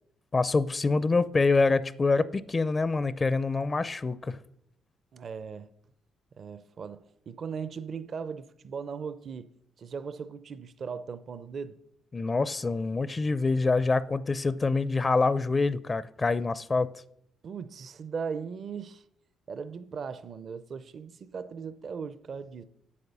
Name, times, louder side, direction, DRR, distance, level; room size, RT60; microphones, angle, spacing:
voice 1, 0.3-4.4 12.1-17.0, left 3 dB, 30° left, 0.4 m, -26 dB
voice 2, 5.1-5.7 6.4-9.5 9.8-11.8 17.4-19.0 19.5-22.6, right 6 dB, 55° right, 0.5 m, -38 dB
8.6 x 8.3 x 6.8 m
cardioid pair, 90°, 0 cm